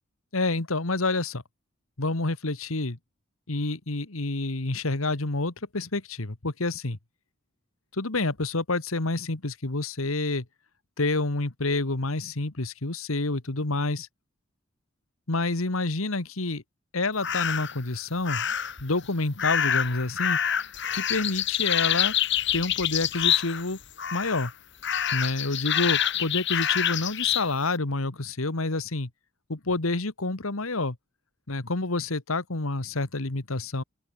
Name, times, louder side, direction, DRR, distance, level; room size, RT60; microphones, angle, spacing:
voice 1, 0.3-1.4 2.0-3.0 3.5-7.0 7.9-10.5 11.0-14.1 15.3-16.6 16.9-18.5 18.8-20.4 20.9-22.2 22.5-23.8 24.1-24.5 25.1-29.1 29.5-31.0 31.5-33.8, left 2 dB, 85° left, 1.8 m, -28 dB
sound 1, 17.2-17.8 18.2-18.8 19.4-23.7 24.0-24.5 24.8-27.5, left 10 dB, 55° left, 3.2 m, -26 dB
open air
head